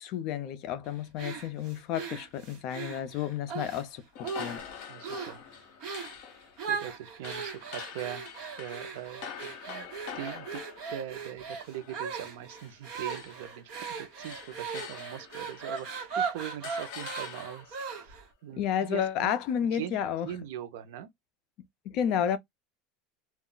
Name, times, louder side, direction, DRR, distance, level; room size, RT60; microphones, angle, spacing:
voice 1, 0.0-4.6 18.6-20.3 21.9-22.4, left 9 dB, 45° left, 0.4 m, -31 dB
sound 1, 1.2-3.8 4.2-4.7 5.0-5.4 5.8-6.2 6.6-18.3, right 6 dB, 45° right, 1.0 m, -38 dB
sound 2, 4.1-12.8 13.0-16.1 16.6-17.8, left 8 dB, 65° left, 0.8 m, -45 dB
voice 2, 4.8-6.1 6.6-8.3 8.5-9.9 10.1-10.6 10.9-19.3 19.6-21.1, right 11 dB, 75° right, 0.6 m, -41 dB
2.3 x 2.0 x 3.7 m
cardioid pair, 170°, 0 cm